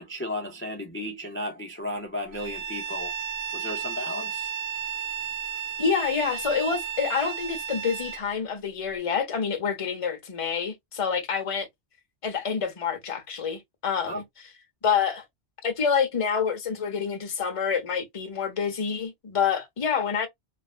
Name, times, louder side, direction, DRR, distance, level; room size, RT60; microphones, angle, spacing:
voice 1, 0.0-3.1 3.5-4.5 14.1-14.2, left 1 dB, 20° left, 0.4 m, -34 dB
Bowed string instrument, 2.3-8.2, right 8 dB, 85° right, 0.9 m, -33 dB
voice 2, 5.8-11.7 12.2-14.2 14.8-15.2 15.6-20.3, left 6 dB, 35° left, 0.8 m, -27 dB
3.1 x 2.5 x 2.4 m
omnidirectional pair, 1.1 m